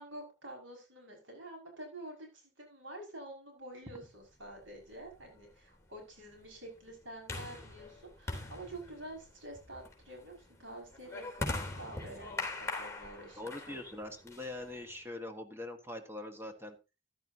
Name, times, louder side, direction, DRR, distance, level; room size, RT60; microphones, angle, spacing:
voice 1, 0.0-13.4 13.7-13.8, right 1 dB, 85° right, 1 dB, 6.0 m, -48 dB
sound 1, 4.6-15.0, left 2 dB, 15° left, 3.4 m, -43 dB
voice 2, 13.4-16.8, left 2 dB, 15° right, 5 dB, 1.5 m, -43 dB
14.5 x 11.0 x 2.8 m, 0.28 s
head